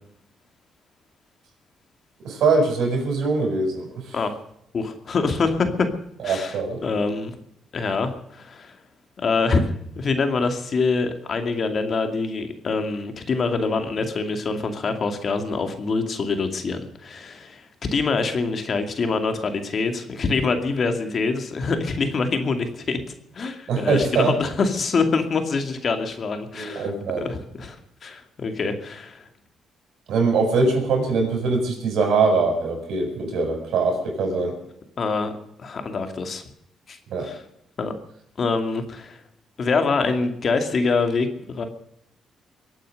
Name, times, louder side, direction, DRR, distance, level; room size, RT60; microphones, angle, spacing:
voice 1, 2.2-4.2 6.2-6.8 23.7-24.3 26.5-27.3 30.1-34.6 37.1-37.3, right 4 dB, 75° right, 3 dB, 7.0 m, -22 dB
voice 2, 4.7-5.9 6.2-7.4 7.7-8.8 9.2-23.0 23.3-26.9 27.3-29.2 35.0-35.3 35.6-36.4 36.9-37.4 37.8-37.9 38.4-39.2 39.6-41.6, left 4 dB, 45° left, 7 dB, 2.3 m, -25 dB
23.5 x 9.0 x 6.5 m, 0.75 s
cardioid pair, 90°, 0 cm